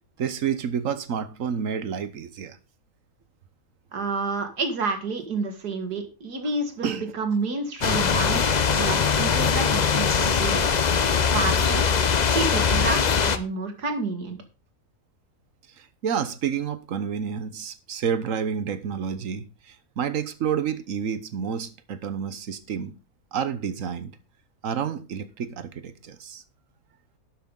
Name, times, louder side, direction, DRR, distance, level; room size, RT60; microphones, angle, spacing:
voice 1, 0.2-2.6 6.8-7.1 8.3-8.8 15.8-23.0 23.3-24.2 24.6-26.4, right 7 dB, 60° right, 1.2 m, -30 dB
voice 2, 3.9-10.7 11.3-11.9 12.3-14.4, right 4 dB, 85° right, 2.4 m, -29 dB
sound 1, 7.8-13.4, left 6 dB, 45° left, 0.5 m, -21 dB
12.0 x 8.3 x 3.8 m
omnidirectional pair, 1.7 m